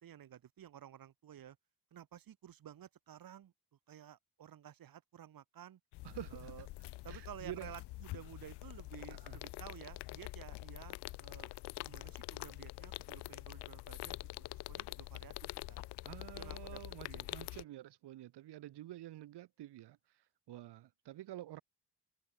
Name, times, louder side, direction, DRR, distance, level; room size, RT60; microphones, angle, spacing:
voice 1, 0.0-1.6 1.9-3.5 3.9-5.8 6.3-6.7 7.0-11.5 11.8-15.8 16.4-16.8 17.1-17.3, right 10 dB, 60° right, 4.9 m, -53 dB
sound 1, 5.9-17.6, left 20 dB, 85° left, 0.6 m, -46 dB
voice 2, 6.0-6.5 7.1-7.7 9.1-9.4 16.0-21.6, right 14 dB, 80° right, 3.4 m, -49 dB
cardioid pair, 140°, 40 cm